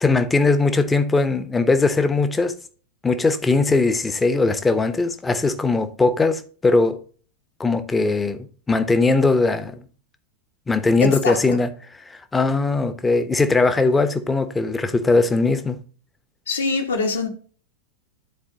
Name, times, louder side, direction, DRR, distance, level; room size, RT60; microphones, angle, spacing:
voice 1, 0.0-2.6 3.0-7.0 7.6-9.8 10.7-11.7 12.1-15.8, left 3 dB, 10° left, 0.8 m, -20 dB
voice 2, 11.0-11.4 16.5-17.3, left 4 dB, 70° left, 1.5 m, -23 dB
12.5 x 4.3 x 2.8 m
figure-of-eight pair, 90°, 0 cm